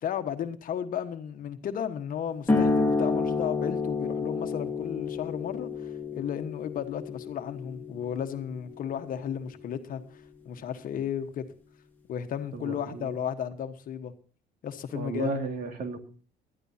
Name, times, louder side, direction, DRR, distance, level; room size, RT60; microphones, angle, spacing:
voice 1, 0.0-10.0 10.4-11.5 12.1-14.1 14.6-15.3, left 9 dB, 55° left, 1.3 m, -34 dB
sound 1, 2.5-9.6, left 4 dB, 10° left, 2.1 m, -30 dB
voice 2, 12.5-13.1 14.9-16.0, right 3 dB, 60° right, 2.4 m, -33 dB
20.0 x 12.5 x 2.8 m
cardioid pair, 110°, 17 cm